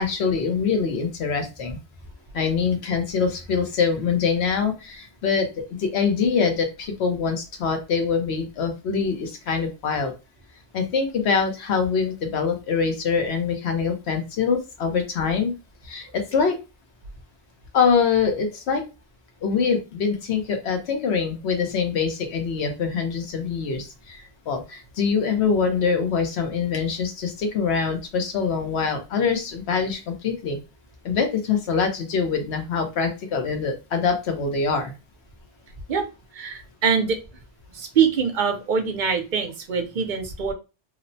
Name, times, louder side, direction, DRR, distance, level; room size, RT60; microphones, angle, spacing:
voice 1, 0.0-1.8 2.3-5.5 5.8-10.1 10.7-15.5 15.8-16.6 17.7-18.8 19.4-30.6 31.0-34.9, left 5 dB, 75° left, 5 dB, 0.9 m, -24 dB
voice 2, 36.3-37.2 37.7-40.5, right 6 dB, 55° right, 4 dB, 0.7 m, -23 dB
3.0 x 2.0 x 2.5 m, 0.28 s
omnidirectional pair, 1.1 m